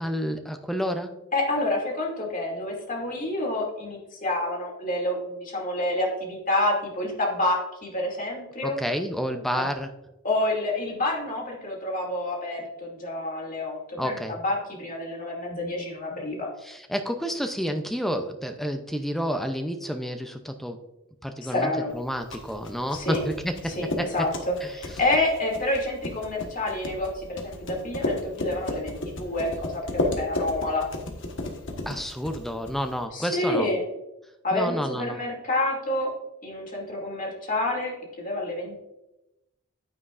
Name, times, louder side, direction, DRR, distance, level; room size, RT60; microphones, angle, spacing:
voice 1, 0.0-1.2 8.6-9.9 14.0-14.3 16.6-20.8 21.2-24.3 24.6-24.7 31.9-33.7 34.5-35.2, equal, ahead, 6 dB, 0.5 m, -30 dB
voice 2, 1.3-8.8 9.5-9.6 10.2-14.2 14.4-16.5 21.4-21.9 22.9-23.2 23.7-30.9 33.1-33.9 34.4-36.1 36.4-37.9 38.2-38.8, left 1 dB, 40° left, -2 dB, 2.4 m, -28 dB
sound 1, 22.0-33.0, left 2 dB, 55° left, 1.4 m, -33 dB
10.0 x 9.5 x 2.5 m, 0.94 s
head